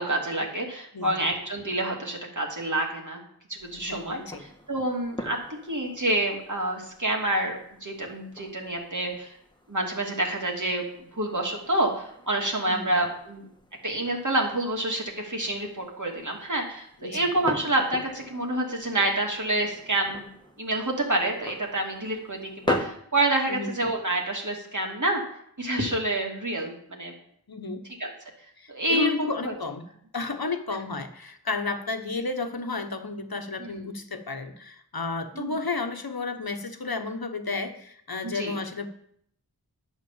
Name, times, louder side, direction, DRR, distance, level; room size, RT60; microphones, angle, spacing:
voice 1, 0.0-3.2 3.5-5.4 5.7-9.4 9.7-13.5 13.8-20.3 20.6-25.2 25.6-27.1 28.0-28.1 28.7-29.5 33.6-33.7 35.4-35.6 38.2-38.5, right 1 dB, 50° right, 0 dB, 2.6 m, -28 dB
voice 2, 0.9-1.3 3.7-4.4 12.7-12.9 17.0-17.3 23.5-23.7 27.5-27.8 28.6-29.9 30.1-38.9, left 3 dB, 65° left, 6 dB, 1.3 m, -32 dB
sound 1, 3.6-22.9, left 1 dB, 10° left, 1.5 m, -41 dB
11.0 x 6.3 x 7.4 m, 0.69 s
wide cardioid pair, 45°, 39 cm